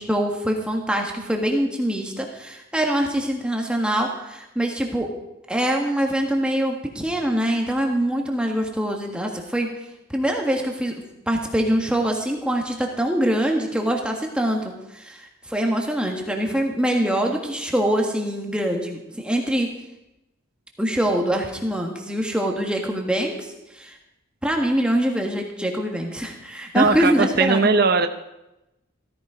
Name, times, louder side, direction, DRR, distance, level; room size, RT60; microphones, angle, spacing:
voice 1, 0.0-5.1 5.5-9.7 10.1-19.7 20.8-24.0 24.4-27.7, right 1 dB, 5° right, 1 dB, 1.6 m, -24 dB
voice 2, 26.7-28.1, right 4 dB, 45° right, 7 dB, 0.9 m, -19 dB
16.5 x 14.5 x 5.0 m, 0.91 s
head